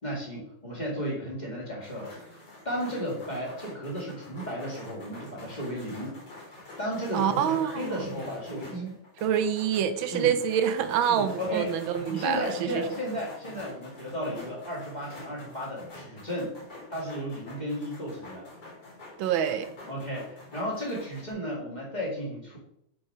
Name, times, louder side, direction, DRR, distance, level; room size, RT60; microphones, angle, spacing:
voice 1, 0.0-2.4 2.6-6.2 6.5-9.0 10.1-10.3 11.1-11.7 12.0-16.6 16.9-18.5 19.9-22.6, equal, 20° left, 2.0 m, -34 dB
sound 1, 1.8-21.3, left 2 dB, 55° left, 3.2 m, -46 dB
voice 2, 7.1-8.1 9.2-12.8 19.2-19.7, right 9 dB, 75° right, 1.4 m, -26 dB
7.0 x 4.6 x 4.3 m
omnidirectional pair, 2.2 m